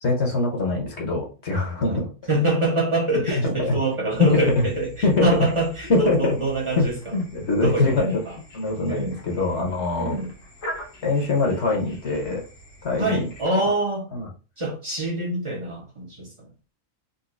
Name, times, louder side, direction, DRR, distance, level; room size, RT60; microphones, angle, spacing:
voice 1, 0.0-2.1 3.3-3.7 4.2-4.6 5.0-5.3 5.9-6.4 6.8-8.2 8.5-10.2 11.0-12.4 12.8-13.3 14.1-14.3, left 3 dB, 55° left, 0 dB, 1.2 m, -23 dB
voice 2, 2.3-7.0 7.6-8.3 8.9-9.2 10.0-10.3 13.0-14.1 14.6-16.5, right 1 dB, 25° right, -1 dB, 0.8 m, -25 dB
sound 1, 4.1-13.5, equal, 75° left, 1.5 m, -43 dB
4.0 x 2.6 x 2.5 m, 0.34 s
omnidirectional pair, 1.4 m